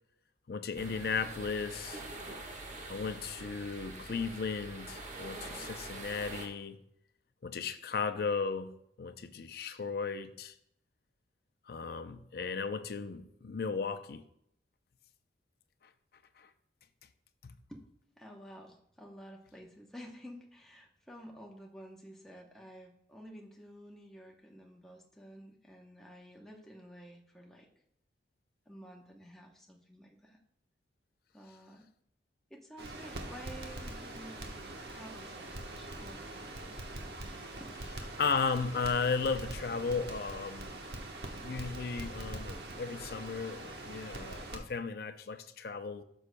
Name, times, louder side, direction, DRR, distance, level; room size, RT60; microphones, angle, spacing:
voice 1, 0.5-2.0 2.9-6.8 7.4-10.5 11.7-14.2 16.4-16.5 17.4-17.5 38.2-40.8 41.4-46.0, left 5 dB, 55° left, 0.5 m, -35 dB
sound 1, 0.8-6.5, right 2 dB, 40° right, 1.3 m, -45 dB
voice 2, 18.2-27.7 28.7-30.4 31.3-31.9 32.5-36.8 37.1-37.2 37.6-37.7, equal, ahead, 0.8 m, -51 dB
Crackle, 32.8-44.6, right 1 dB, 60° right, 1.1 m, -43 dB
13.0 x 6.3 x 2.2 m
head